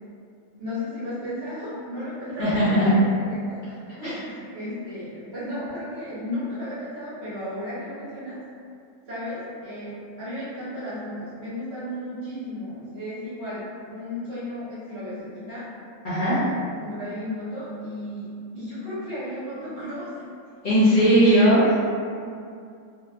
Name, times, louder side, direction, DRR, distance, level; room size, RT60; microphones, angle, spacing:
voice 1, 0.6-8.4 9.1-13.6 13.9-15.7 16.1-20.2, left 1 dB, 50° right, -11 dB, 0.9 m, -34 dB
voice 2, 2.4-2.9 4.0-4.1 16.0-16.4 20.6-21.8, equal, 45° left, -13 dB, 0.8 m, -18 dB
2.6 x 2.2 x 2.2 m, 2.4 s
omnidirectional pair, 1.5 m